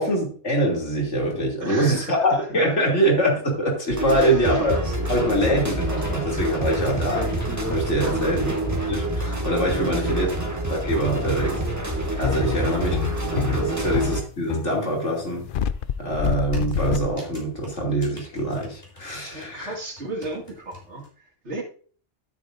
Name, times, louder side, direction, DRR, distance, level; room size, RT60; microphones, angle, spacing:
voice 1, 0.0-4.8 5.1-8.5 8.9-10.3 10.7-11.6 11.8-13.0 13.3-15.4 16.0-19.7, right 1 dB, 80° left, -1 dB, 3.3 m, -24 dB
voice 2, 1.6-3.0 4.1-4.6 8.0-8.4 9.7-10.6 12.4-12.8 13.7-13.8 19.2-21.6, right 2 dB, 75° right, 1 dB, 2.4 m, -35 dB
sound 1, 3.9-14.2, right 1 dB, 15° right, 1.9 m, -27 dB
sound 2, 4.2-6.5 7.0-8.9 9.8-9.9 10.3-10.4 10.7-10.8 11.0-11.1 13.1-13.2 13.4-13.5 15.5-15.6 16.3-19.2 19.4-21.1, equal, 35° left, 4.0 m, -37 dB
sound 3, 12.2-17.7, left 9 dB, 60° left, 0.6 m, -27 dB
12.5 x 8.5 x 2.6 m, 0.43 s
omnidirectional pair, 1.2 m